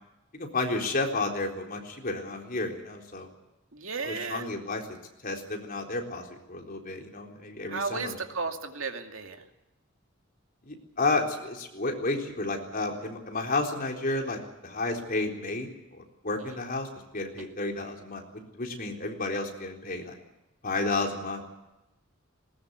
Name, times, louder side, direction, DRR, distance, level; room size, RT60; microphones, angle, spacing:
voice 1, 0.3-3.3 4.0-4.8 5.2-8.2 10.6-15.7 16.2-16.9 17.1-20.1 20.6-21.4, left 2 dB, 45° left, 2 dB, 3.9 m, -31 dB
voice 2, 3.7-4.5 7.7-9.4 16.5-16.6 17.4-17.5, right 4 dB, 80° right, 5 dB, 2.4 m, -34 dB
20.5 x 19.5 x 8.1 m, 0.96 s
head